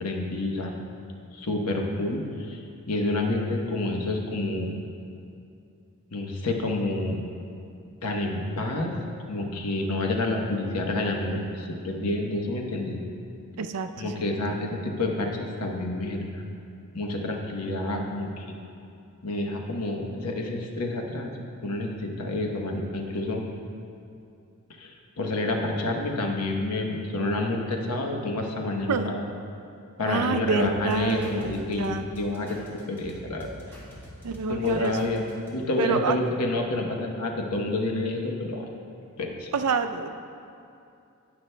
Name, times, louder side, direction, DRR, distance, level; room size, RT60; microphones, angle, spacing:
voice 1, 0.0-0.7 1.3-2.6 2.9-4.7 6.1-7.2 8.0-8.9 9.3-13.0 14.0-16.4 16.9-18.5 19.2-21.3 21.6-23.4 24.8-29.3 30.0-32.6 32.9-33.5 34.5-35.2 35.5-38.6 39.2-39.5, left 2 dB, 85° left, 1 dB, 1.0 m, -28 dB
voice 2, 13.6-14.2 14.5-14.7 28.9-29.1 30.0-31.4 31.8-32.0 34.2-35.0 35.8-36.2 39.5-40.1, right 5 dB, 85° right, 8 dB, 0.4 m, -27 dB
sound 1, 30.6-35.5, equal, 10° left, 1.7 m, -45 dB
17.5 x 6.0 x 2.2 m, 2.6 s
head